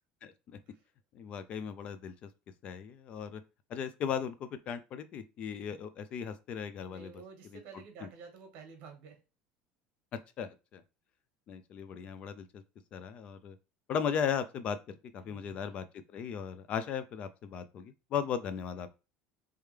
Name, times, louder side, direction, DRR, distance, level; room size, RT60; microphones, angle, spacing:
voice 1, 0.2-0.6 1.1-2.3 2.6-3.4 3.7-7.1 7.5-7.6 8.0-8.1 10.1-10.8 11.5-12.6 12.9-13.6 13.9-14.8 15.1-15.9 16.1-18.9, left 7 dB, 35° left, 0.3 m, -37 dB
voice 2, 6.9-9.2 15.2-15.8, right 5 dB, 50° right, 1.3 m, -51 dB
3.3 x 3.3 x 3.3 m
cardioid pair, 175°, 4 cm